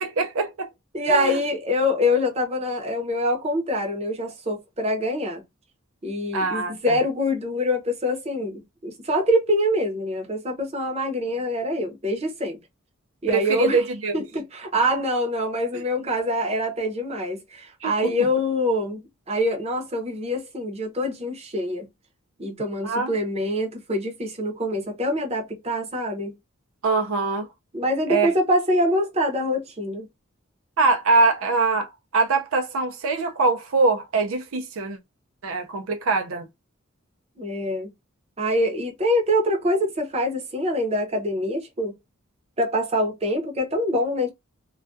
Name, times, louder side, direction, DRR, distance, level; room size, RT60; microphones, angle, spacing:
voice 1, 0.0-0.7 1.1-1.4 6.3-7.0 13.3-14.2 15.7-15.8 17.8-18.1 22.8-23.2 26.8-27.5 28.1-28.3 30.8-35.0 35.4-36.5, right 3 dB, 75° right, 0.5 m, -23 dB
voice 2, 0.9-5.4 6.0-12.6 13.2-13.8 14.1-19.0 19.3-21.9 22.4-26.3 27.7-30.1 37.4-37.9 38.4-41.9 42.6-44.3, left 1 dB, 30° right, 0.7 m, -25 dB
2.3 x 2.2 x 2.5 m
head